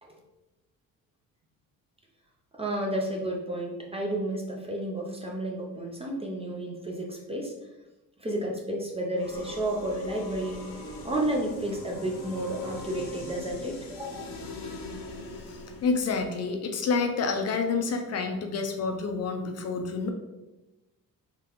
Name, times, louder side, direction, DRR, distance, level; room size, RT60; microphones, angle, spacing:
voice 1, 2.5-7.5 8.2-10.6 11.0-14.4, right 1 dB, 20° right, -1 dB, 0.4 m, -31 dB
sound 1, 9.2-16.1, left 2 dB, 75° left, 0.8 m, -41 dB
voice 2, 15.5-20.1, left 4 dB, 50° left, 4 dB, 0.5 m, -28 dB
3.7 x 3.6 x 2.9 m, 1.0 s
cardioid pair, 175°, 34 cm